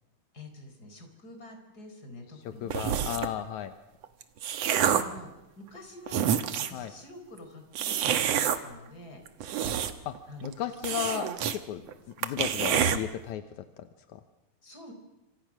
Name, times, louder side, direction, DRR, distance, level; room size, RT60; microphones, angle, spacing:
voice 1, 0.3-2.7 4.8-6.3 6.7-9.2 10.3-10.6 14.6-14.9, left 1 dB, 25° left, 5 dB, 4.6 m, -47 dB
voice 2, 2.6-3.7 6.7-6.9 10.1-10.2 10.4-11.8 12.2-13.4 14.1-14.2, left 10 dB, 75° left, 9 dB, 1.8 m, -34 dB
sound 1, 2.7-3.4 4.0-5.2 5.7-5.8 6.1-6.8 7.7-8.6 9.3-10.2 10.4-10.5 10.8-11.6 11.9-12.0 12.2-13.0, right 9 dB, 65° right, 1.7 m, -27 dB
26.5 x 26.5 x 6.2 m, 0.98 s
omnidirectional pair, 4.6 m